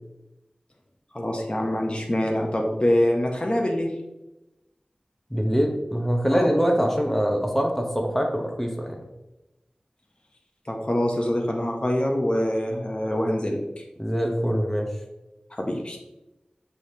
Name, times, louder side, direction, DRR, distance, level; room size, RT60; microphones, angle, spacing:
voice 1, 1.1-3.9 6.3-6.5 10.7-13.8 15.5-16.0, left 1 dB, 40° left, 0 dB, 0.7 m, -25 dB
voice 2, 5.3-9.0 14.0-14.9, equal, 5° left, 2 dB, 0.7 m, -24 dB
5.6 x 3.2 x 2.7 m, 1.0 s
wide cardioid pair, 40°, 3 cm